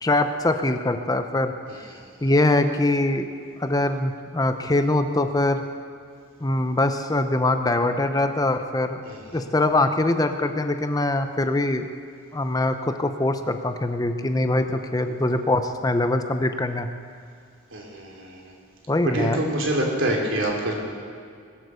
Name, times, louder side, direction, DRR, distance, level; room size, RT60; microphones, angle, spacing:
voice 1, 0.0-1.5 2.2-3.3 3.6-5.6 6.4-9.0 9.3-11.9 12.3-16.9 18.9-19.4, left 2 dB, 20° left, 8 dB, 0.6 m, -23 dB
voice 2, 9.0-9.5 17.7-18.5 19.1-20.7, right 1 dB, 75° right, 0 dB, 3.0 m, -26 dB
21.0 x 7.9 x 6.9 m, 2.2 s
head